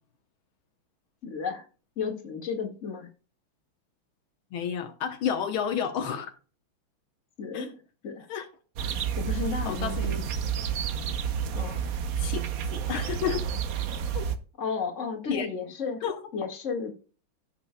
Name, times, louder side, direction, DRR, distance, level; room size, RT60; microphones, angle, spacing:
voice 1, 1.2-1.6 2.0-3.1 7.4-7.8 8.0-8.3 9.2-10.2 11.5-11.8 14.6-16.0 16.3-16.9, left 5 dB, 35° left, 2.0 m, -33 dB
voice 2, 4.5-6.3 7.5-7.7 8.3-8.5 9.6-10.1 12.2-12.4 12.7-13.4 14.1-14.2 15.3-15.5 16.0-16.2, left 8 dB, 80° left, 1.8 m, -30 dB
sound 1, 8.8-14.4, right 8 dB, 60° right, 0.9 m, -30 dB
16.5 x 6.0 x 2.2 m
omnidirectional pair, 2.3 m